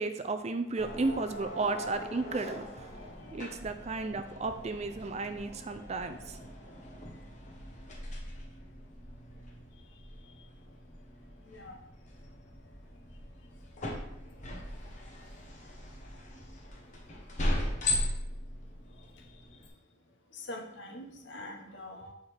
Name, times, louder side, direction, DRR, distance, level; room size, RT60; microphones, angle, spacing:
voice 1, 0.0-3.0 3.3-6.4, right 3 dB, 35° right, 9 dB, 0.4 m, -34 dB
sound 1, 0.8-19.7, left 1 dB, 40° left, 1.1 m, -39 dB
voice 2, 11.4-11.8 14.6-14.7 19.0-19.4 20.3-22.1, left 1 dB, 60° left, 3 dB, 0.9 m, -45 dB
7.9 x 4.5 x 3.4 m, 0.81 s
head